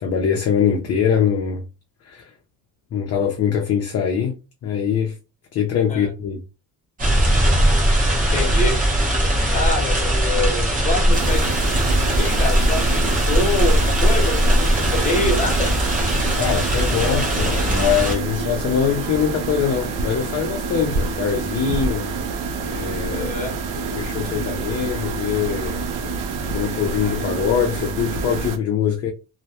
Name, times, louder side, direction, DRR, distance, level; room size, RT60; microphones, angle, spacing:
voice 1, 0.0-1.6 2.0-2.3 2.9-4.3 4.6-5.2 5.5-6.4 16.4-22.1 22.7-23.3 24.0-25.8 26.5-29.1, left 8 dB, 40° left, 0.4 m, -23 dB
sound 1, 7.0-18.2, equal, 20° right, 0.7 m, -19 dB
voice 2, 8.2-8.8 9.5-11.4 12.2-15.7 23.1-23.5, left 2 dB, 20° left, 0.9 m, -26 dB
sound 2, 11.1-28.6, right 4 dB, 60° right, 0.5 m, -27 dB
2.1 x 2.1 x 2.7 m
cardioid pair, 135°, 38 cm